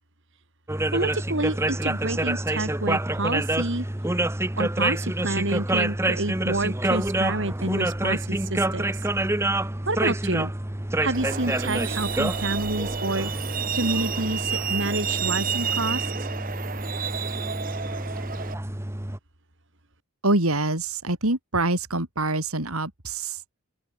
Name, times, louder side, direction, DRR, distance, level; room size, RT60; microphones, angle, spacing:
sound 1, 0.7-19.2, right 1 dB, 10° right, 1.0 m, -27 dB
voice 1, 0.9-3.9 4.6-9.0 9.9-10.5 11.0-13.3 13.7-16.1, right 2 dB, 60° right, 4.0 m, -28 dB
Truck, 11.1-18.5, right 7 dB, 40° right, 1.3 m, -31 dB
voice 2, 20.2-23.4, right 2 dB, 85° right, 5.0 m, -25 dB
open air
head